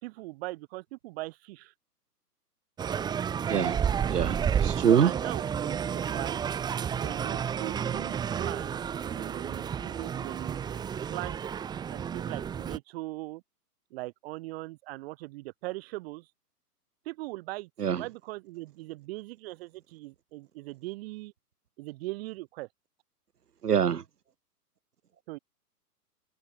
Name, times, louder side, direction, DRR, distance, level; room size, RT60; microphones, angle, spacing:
voice 1, 0.0-1.7 5.0-6.6 7.0-11.5 11.9-13.4 13.9-16.3 17.1-17.7 17.9-21.3 21.8-22.7 25.3-25.4, right 20 dB, 40° right, 4.3 m, -40 dB
sound 1, 2.8-12.8, right 8 dB, 10° right, 1.0 m, -31 dB
voice 2, 4.1-5.1 17.8-18.0 23.6-24.0, right 8 dB, 75° right, 1.3 m, -24 dB
open air
figure-of-eight pair, 120°, 47 cm